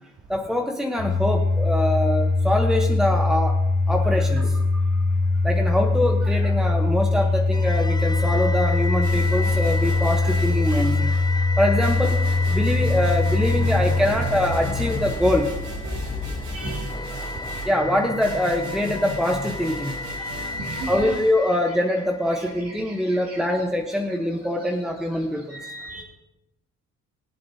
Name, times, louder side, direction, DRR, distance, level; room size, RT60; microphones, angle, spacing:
voice 1, 0.3-3.6 3.9-5.0 5.4-12.2 12.5-15.5 17.2-17.3 17.6-20.5 20.9-25.7, left 1 dB, ahead, 2 dB, 0.9 m, -24 dB
Domestic sounds home sounds, 1.0-17.9, left 3 dB, 40° left, 2.7 m, -23 dB
sound 1, 7.5-22.7, left 2 dB, 15° left, 0.5 m, -33 dB
sound 2, 9.0-11.3 11.8-21.3, right 2 dB, 80° right, 4.8 m, -38 dB
voice 2, 15.8-16.2 16.5-16.9 20.2-21.1 22.6-23.4 25.5-26.0, right 2 dB, 55° right, -4 dB, 2.4 m, -37 dB
22.5 x 7.7 x 2.7 m, 0.99 s
cardioid pair, 110°, 29 cm